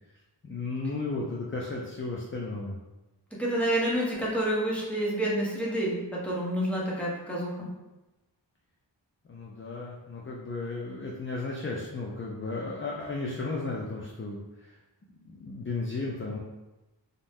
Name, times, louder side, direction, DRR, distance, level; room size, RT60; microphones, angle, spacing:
voice 1, 0.4-2.8 9.3-14.8 15.2-16.4, left 3 dB, 30° left, -3 dB, 0.4 m, -34 dB
voice 2, 3.4-7.7, right 1 dB, 5° left, -5 dB, 0.8 m, -28 dB
2.6 x 2.1 x 3.4 m, 1.1 s
wide cardioid pair, 55°, 45 cm